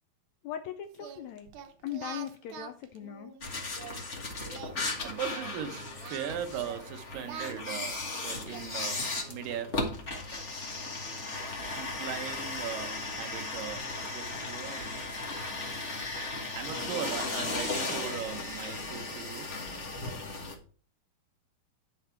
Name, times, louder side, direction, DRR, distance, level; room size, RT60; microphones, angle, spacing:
voice 1, 0.4-1.5 1.8-3.3, left 10 dB, 80° left, 1.7 m, -39 dB
Singing, 0.9-4.0 4.4-6.9 7.3-9.9, right 7 dB, 70° right, 2.3 m, -46 dB
sound 1, 3.4-20.5, left 3 dB, 40° left, 1.0 m, -36 dB
voice 2, 5.0-9.9 10.4-10.6 11.5-15.0 16.3-19.5, right 9 dB, 90° right, 2.6 m, -39 dB
11.0 x 4.6 x 4.5 m
omnidirectional pair, 3.8 m